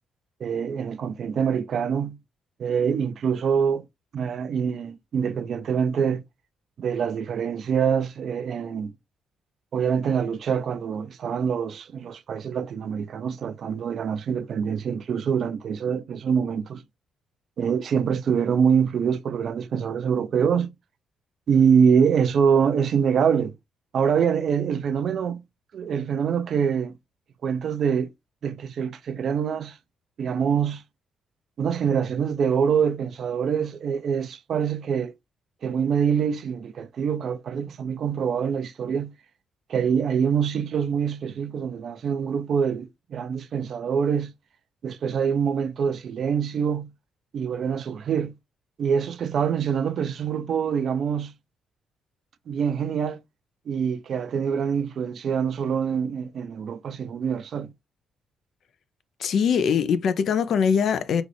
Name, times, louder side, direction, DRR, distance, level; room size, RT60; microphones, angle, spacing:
voice 1, 0.4-2.2 2.6-3.8 4.1-6.2 6.8-8.9 9.7-16.8 17.6-20.7 21.5-23.5 23.9-25.4 25.7-27.0 27.4-28.1 28.4-29.8 30.2-30.8 31.6-35.1 35.6-39.1 39.7-44.3 44.8-46.9 47.3-48.3 48.8-51.3 52.5-53.2 53.7-57.7, right 7 dB, 60° right, 0.5 m, -25 dB
voice 2, 59.2-61.2, left 7 dB, 65° left, 0.5 m, -22 dB
3.9 x 2.5 x 3.3 m
cardioid pair, 90°, 0 cm